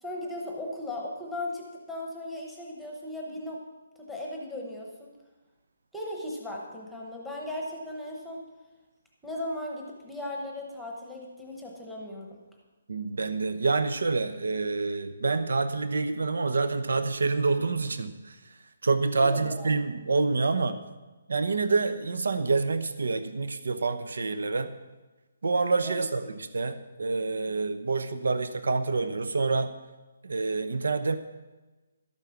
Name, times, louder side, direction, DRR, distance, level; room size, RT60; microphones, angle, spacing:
voice 1, 0.0-3.6 4.0-5.1 5.9-8.5 9.2-12.4 19.2-19.7 25.8-26.0, left 1 dB, ahead, -1 dB, 1.0 m, -37 dB
voice 2, 12.9-18.4 18.8-20.8 21.3-24.7 25.4-29.7 30.2-31.2, right 3 dB, 80° right, 10 dB, 0.9 m, -27 dB
12.0 x 8.8 x 6.0 m, 1.2 s
hypercardioid pair, 180°, 0 cm